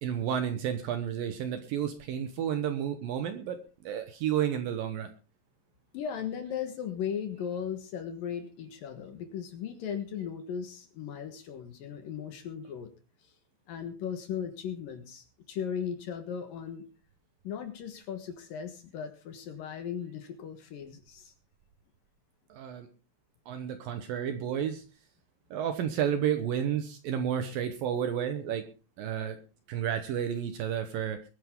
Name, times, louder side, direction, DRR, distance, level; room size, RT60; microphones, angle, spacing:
voice 1, 0.0-5.1 22.5-22.9 23.5-24.8 25.5-28.7 29.0-29.4 29.7-31.2, right 9 dB, 70° right, 8 dB, 2.4 m, -31 dB
voice 2, 5.9-12.9 13.2-13.3 13.7-16.9 17.4-21.3, left 8 dB, 65° left, 7 dB, 2.7 m, -37 dB
22.0 x 9.7 x 3.7 m, 0.35 s
omnidirectional pair, 5.0 m